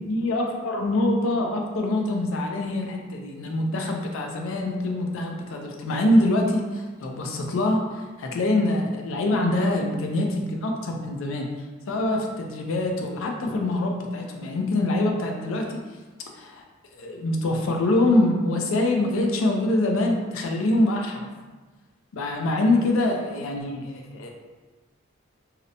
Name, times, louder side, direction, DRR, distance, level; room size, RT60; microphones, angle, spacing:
voice 1, 0.0-11.5 11.9-15.8 16.3-16.6 17.0-21.3 22.1-24.3, left 1 dB, 70° left, 2 dB, 0.4 m, -24 dB
2.8 x 2.0 x 2.5 m, 1.3 s
head